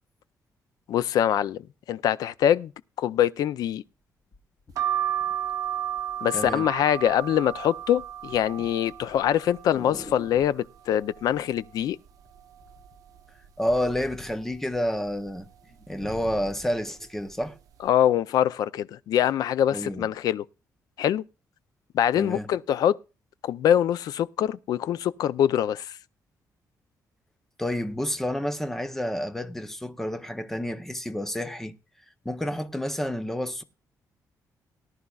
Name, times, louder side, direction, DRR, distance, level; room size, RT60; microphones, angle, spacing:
voice 1, 0.9-1.6 1.9-2.7 3.0-3.8 6.2-12.0 17.8-20.4 21.0-21.2 21.9-23.0 23.4-26.0, left 10 dB, 75° left, 0.4 m, -24 dB
sound 1, 4.3-5.8 6.5-6.7 7.0-7.5 7.8-10.7 11.8-12.3 12.6-14.9 15.2-15.3 15.6-16.8 17.4-17.5, left 2 dB, 25° left, 1.3 m, -46 dB
sound 2, 4.8-10.4 10.9-11.7 12.1-12.2 12.3-13.5 13.9-14.3 15.1-15.4 16.2-16.4 16.7-16.9, right 11 dB, 60° right, 0.9 m, -33 dB
voice 2, 6.3-6.7 13.6-15.5 15.9-17.6 19.7-20.1 22.1-22.5 27.6-31.7 32.2-33.6, equal, 5° left, 0.7 m, -29 dB
18.0 x 11.0 x 2.3 m
wide cardioid pair, 180°, 7 cm